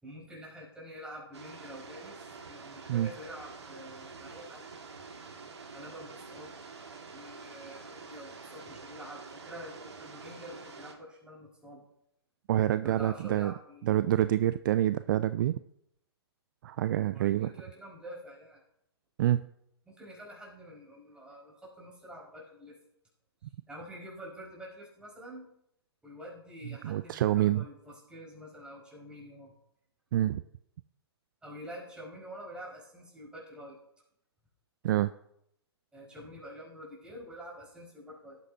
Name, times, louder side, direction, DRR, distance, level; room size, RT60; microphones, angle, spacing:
voice 1, 0.0-4.7 5.7-6.5 7.1-11.8 12.8-13.9 17.1-18.6 19.9-22.8 23.7-25.4 26.0-29.5 31.4-33.8 35.9-38.4, equal, 5° right, -5 dB, 5.1 m, -47 dB
sound 1, 1.3-10.9, right 4 dB, 85° right, 1.8 m, -47 dB
voice 2, 12.5-13.5 13.9-15.6 16.6-17.5 19.2-19.4 26.8-27.6 30.1-30.4 34.8-35.1, right 12 dB, 50° right, 13 dB, 0.4 m, -27 dB
18.0 x 8.3 x 2.8 m, 0.75 s
hypercardioid pair, 130°, 14 cm